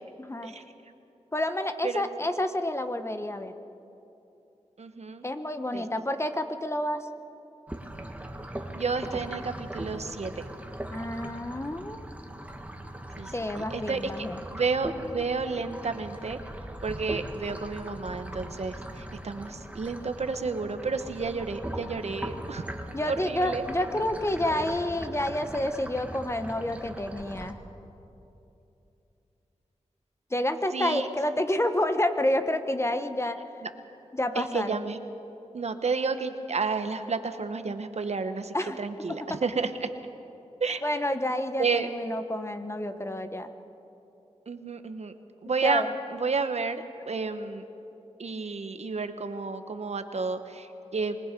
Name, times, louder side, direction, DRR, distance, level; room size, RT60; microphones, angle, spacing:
voice 1, 0.2-0.5 1.3-3.5 5.2-7.1 10.9-12.1 13.3-14.4 22.9-27.6 30.3-33.4 34.1-34.8 38.5-38.8 39.1-39.4 40.8-43.5 45.6-45.9, left 1 dB, 20° left, 8 dB, 1.2 m, -29 dB
voice 2, 4.8-5.2 5.7-5.8 8.7-10.4 13.2-13.3 13.5-14.3 14.5-16.4 16.8-22.6 23.0-23.6 30.7-31.1 33.6-33.7 34.3-35.0 35.5-39.9 40.6-40.8 41.6-41.9 44.5-45.1 45.4-47.6 48.2-51.2, right 4 dB, 65° right, 9 dB, 1.1 m, -31 dB
sound 1, 7.7-27.5, right 1 dB, 10° right, 1.8 m, -40 dB
26.0 x 20.0 x 5.3 m, 2.9 s
cardioid pair, 55°, 12 cm